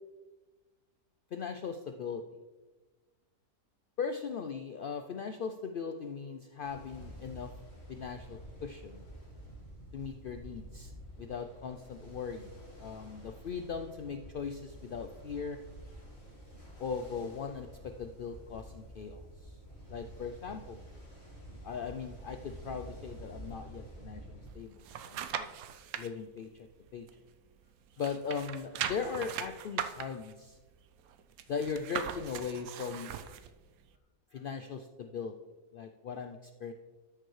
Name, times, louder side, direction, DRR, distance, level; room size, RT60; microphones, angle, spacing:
voice 1, 1.3-2.2 4.0-7.5 7.9-9.1 9.9-10.9 11.2-15.6 16.8-19.5 19.9-20.8 21.6-25.5 26.0-26.7 26.9-27.1 28.0-30.6 31.5-33.1 34.3-35.4 35.7-36.7, left 6 dB, 85° left, 7 dB, 0.4 m, -39 dB
Ocean, 6.6-24.5, right 1 dB, 50° left, 2.8 m, -49 dB
sound 1, 24.5-26.1 26.6-27.7 27.9-33.5 33.9-34.0, right 9 dB, 85° right, 1.1 m, -40 dB
13.0 x 6.7 x 3.2 m, 1.2 s
omnidirectional pair, 1.5 m